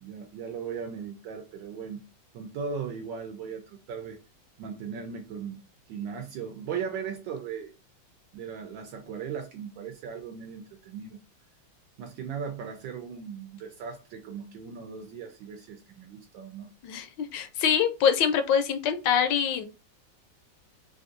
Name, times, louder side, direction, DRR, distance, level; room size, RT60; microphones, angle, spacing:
voice 1, 0.0-2.0 2.3-4.2 4.6-5.6 5.9-7.7 8.3-11.2 12.0-16.7, right 6 dB, 80° right, 4 dB, 1.3 m, -37 dB
voice 2, 16.8-19.6, left 8 dB, 75° left, 8 dB, 1.2 m, -25 dB
3.5 x 2.6 x 2.5 m, 0.29 s
omnidirectional pair, 2.1 m